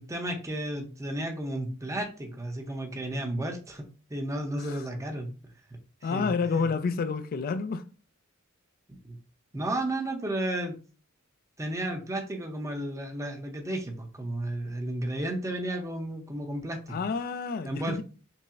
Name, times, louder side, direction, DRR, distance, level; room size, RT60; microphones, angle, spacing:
voice 1, 0.0-5.3 6.0-6.7 9.0-9.2 9.5-10.8 11.6-17.0 17.6-18.0, right 1 dB, 15° right, 0.6 m, -33 dB
voice 2, 6.0-7.8 16.9-18.0, left 5 dB, 45° left, 0.3 m, -29 dB
5.4 x 2.0 x 2.4 m
head